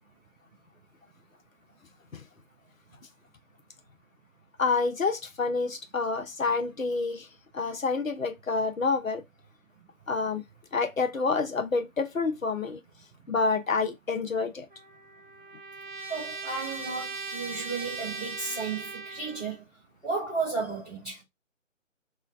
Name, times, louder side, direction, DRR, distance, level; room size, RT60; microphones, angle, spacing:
voice 1, 4.6-7.3 7.5-9.2 10.1-10.4 10.7-12.8 13.3-14.7, left 4 dB, 85° left, 0.8 m, -28 dB
Trumpet, 14.7-19.6, right 4 dB, 40° right, 0.8 m, -39 dB
voice 2, 16.1-19.6 20.0-21.2, right 4 dB, ahead, 0.8 m, -33 dB
3.2 x 2.3 x 3.3 m
figure-of-eight pair, 150°, 40 cm